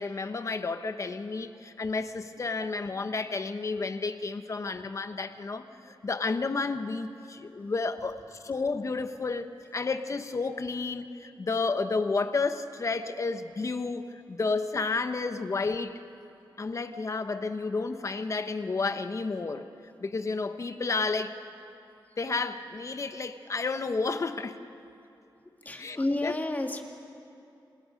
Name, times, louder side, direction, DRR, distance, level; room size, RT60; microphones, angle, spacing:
voice 1, 0.0-16.0 16.6-19.7 20.0-21.4 22.2-24.6 25.8-26.3, left 4 dB, 40° left, 9 dB, 1.1 m, -31 dB
voice 2, 25.6-26.8, left 2 dB, 20° left, 3 dB, 2.1 m, -32 dB
27.5 x 26.5 x 5.3 m, 2.6 s
wide cardioid pair, 130°, 8 cm